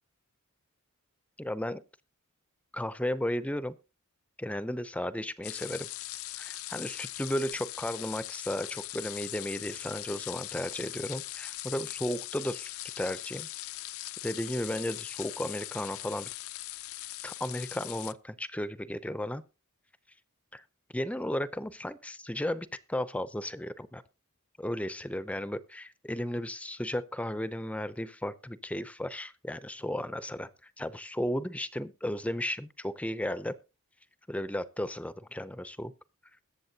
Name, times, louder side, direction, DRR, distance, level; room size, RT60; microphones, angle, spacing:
voice 1, 1.4-1.8 2.7-3.8 4.4-5.9 6.4-12.7 13.0-13.5 14.2-16.3 17.2-19.4 20.5-20.6 20.9-24.0 24.6-30.5 30.8-33.6 34.3-35.9, left 1 dB, 5° left, 14 dB, 0.5 m, -34 dB
sound 1, 5.4-18.1, left 16 dB, 65° left, 0.5 m, -40 dB
21.5 x 7.2 x 2.8 m, 0.29 s
head